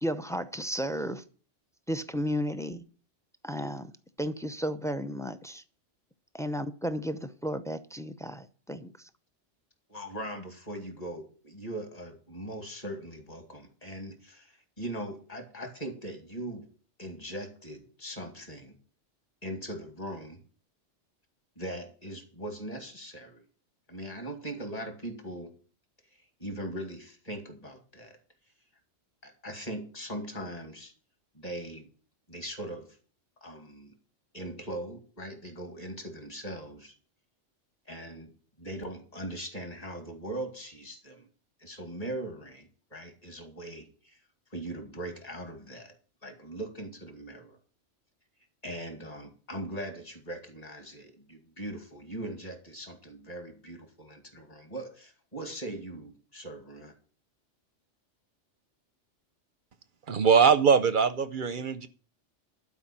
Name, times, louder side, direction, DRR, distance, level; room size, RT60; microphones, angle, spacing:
voice 1, 0.0-1.2 1.9-2.8 3.4-3.9 4.2-5.6 6.3-8.9, equal, 5° left, 0.4 m, -33 dB
voice 2, 9.9-16.7 17.0-18.8 19.4-20.4 21.6-23.4 23.9-25.5 26.4-28.2 29.2-30.9 31.3-31.9 32.3-33.0 33.4-34.0 34.3-36.9 37.9-38.3 38.6-41.3 41.6-44.2 44.5-45.9 46.2-47.6 48.6-56.9, right 1 dB, 30° left, 2.3 m, -40 dB
voice 3, 60.1-61.9, right 6 dB, 50° right, 0.7 m, -22 dB
12.0 x 5.1 x 8.6 m
omnidirectional pair, 1.2 m